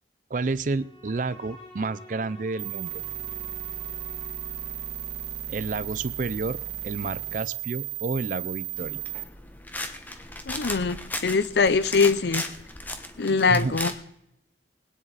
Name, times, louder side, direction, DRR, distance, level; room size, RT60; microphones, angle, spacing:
voice 1, 0.3-2.9 5.5-6.6 6.8-9.0 13.5-13.8, right 3 dB, 45° right, 0.5 m, -30 dB
Bowed string instrument, 0.7-5.5, left 2 dB, 35° left, 5.0 m, -49 dB
sound 1, 2.6-9.2, right 12 dB, 75° right, 2.1 m, -35 dB
sound 2, 8.8-13.9, left 1 dB, 10° left, 1.0 m, -36 dB
voice 2, 10.5-12.4 13.2-13.9, left 4 dB, 75° left, 0.6 m, -22 dB
21.0 x 9.7 x 4.0 m
head